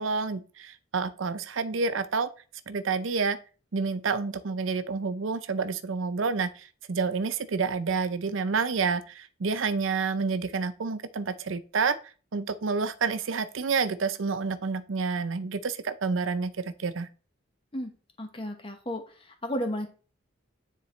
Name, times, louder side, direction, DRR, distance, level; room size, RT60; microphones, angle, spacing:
voice 1, 0.0-2.3 2.7-3.4 3.7-12.0 12.3-17.1, right 4 dB, 85° right, 0.6 m, -29 dB
voice 2, 18.2-19.9, equal, 25° left, 1.2 m, -33 dB
9.7 x 3.9 x 3.2 m
head